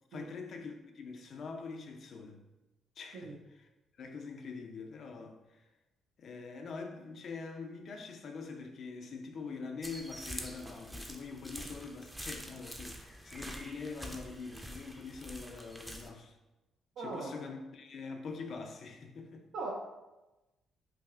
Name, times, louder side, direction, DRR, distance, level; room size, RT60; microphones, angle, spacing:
voice 1, 0.1-2.4 3.0-3.7 4.0-5.7 6.2-16.4 17.0-19.5, left 4 dB, 60° left, 4 dB, 0.4 m, -44 dB
sound 1, 9.8-16.1, equal, 5° right, 0.5 m, -46 dB
voice 2, 17.0-17.4 19.5-19.7, right 3 dB, 75° right, -3 dB, 0.4 m, -39 dB
5.7 x 2.0 x 2.3 m, 1.0 s
cardioid pair, 90°, 0 cm